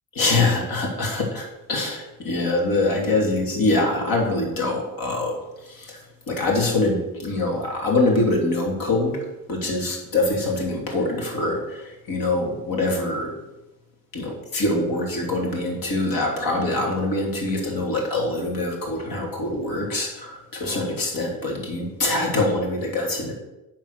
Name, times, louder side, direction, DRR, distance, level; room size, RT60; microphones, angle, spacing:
voice 1, 0.1-9.2 9.5-13.3 14.1-23.3, left 2 dB, 65° left, 0 dB, 3.0 m, -24 dB
9.6 x 4.6 x 6.6 m, 0.97 s
cardioid pair, 115°, 37 cm